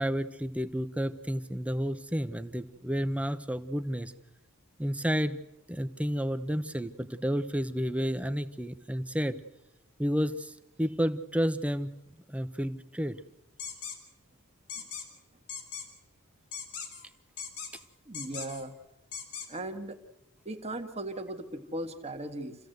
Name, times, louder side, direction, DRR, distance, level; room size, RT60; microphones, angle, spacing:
voice 1, 0.0-4.1 4.8-5.4 5.7-9.4 10.0-11.9 12.3-13.2, equal, 5° right, 11 dB, 0.8 m, -31 dB
sound 1, 13.6-14.0 14.7-15.1 15.5-15.9 16.5-17.0 17.4-17.8 18.1-18.6 19.1-19.5, left 7 dB, 75° left, 3.7 m, -39 dB
voice 2, 18.1-18.7 19.5-20.0 20.5-22.6, right 1 dB, 30° right, 6 dB, 1.7 m, -37 dB
28.5 x 15.5 x 8.0 m, 0.92 s
head